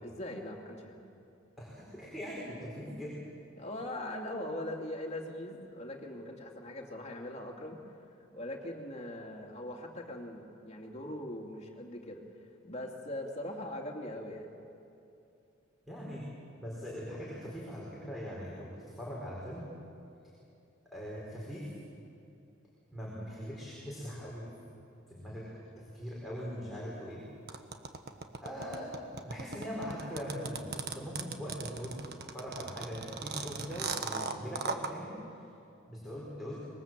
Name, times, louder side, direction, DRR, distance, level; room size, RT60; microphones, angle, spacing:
voice 1, 0.0-1.0 3.6-7.9 8.3-12.2 12.6-14.5, left 1 dB, 35° left, 1 dB, 2.7 m, -41 dB
voice 2, 1.6-3.2 15.9-16.3 16.6-19.7 20.9-21.7 22.9-24.5 25.1-27.2 28.4-32.0 32.3-35.2 35.8-36.6, equal, ahead, -6 dB, 4.7 m, -41 dB
sound 1, 27.5-34.9, right 5 dB, 55° right, 1.4 m, -37 dB
25.5 x 21.5 x 7.6 m, 2.7 s
head